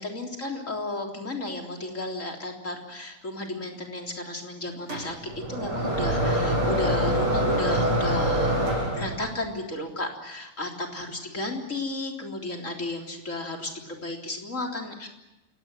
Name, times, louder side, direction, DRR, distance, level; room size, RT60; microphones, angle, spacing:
voice 1, 0.0-8.5 8.9-15.1, left 2 dB, 35° left, 2 dB, 4.0 m, -33 dB
sound 1, 4.9-9.4, right 1 dB, 75° right, 7.9 m, -25 dB
28.5 x 18.0 x 9.4 m, 0.97 s
omnidirectional pair, 2.4 m